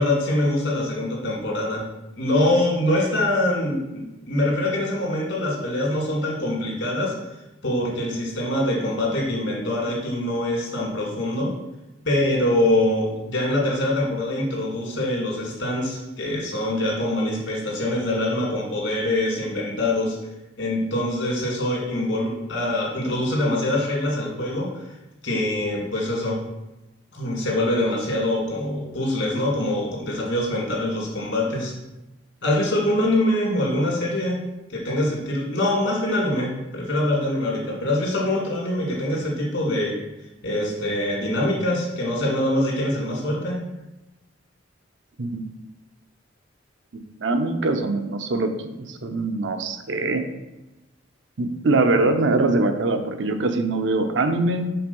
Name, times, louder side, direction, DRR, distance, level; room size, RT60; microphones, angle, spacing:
voice 1, 0.0-1.8 2.2-7.2 7.6-11.5 12.0-20.2 20.6-24.7 25.2-26.4 27.1-31.7 32.4-34.4 34.7-40.0 40.4-43.6, left 1 dB, 75° left, -2 dB, 2.0 m, -24 dB
voice 2, 46.9-48.5 48.8-50.2 51.4-54.7, right 2 dB, 70° right, 7 dB, 0.7 m, -23 dB
5.7 x 3.7 x 5.3 m, 1.0 s
head